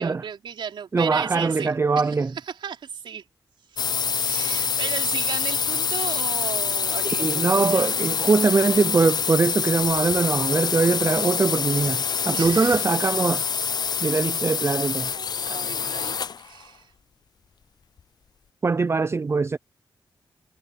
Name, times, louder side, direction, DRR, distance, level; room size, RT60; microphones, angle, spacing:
voice 1, 0.0-2.2 2.5-3.2 3.7-3.8 4.1-8.0 12.3-12.8 14.6-14.8 15.1-16.9, right 7 dB, 80° right, 4.0 m, -35 dB
voice 2, 0.9-2.3 7.0-13.4 14.0-15.1 18.6-19.6, right 4 dB, 35° right, 0.5 m, -22 dB
sound 1, 3.8-16.5, left 6 dB, 55° left, 0.5 m, -26 dB
cardioid pair, 70°, 8 cm